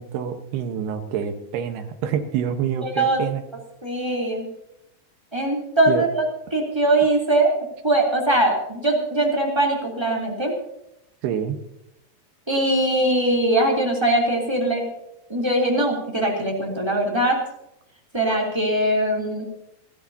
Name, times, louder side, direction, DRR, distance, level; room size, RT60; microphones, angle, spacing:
voice 1, 0.0-3.4 5.9-6.0 11.2-11.6, right 8 dB, 70° right, 7 dB, 2.9 m, -27 dB
voice 2, 2.8-3.2 3.8-4.5 5.3-6.2 6.5-7.5 7.8-10.5 12.5-14.9 15.3-17.4 18.1-19.4, right 1 dB, 5° right, 0 dB, 2.3 m, -21 dB
29.0 x 11.5 x 2.8 m, 0.81 s
omnidirectional pair, 5.4 m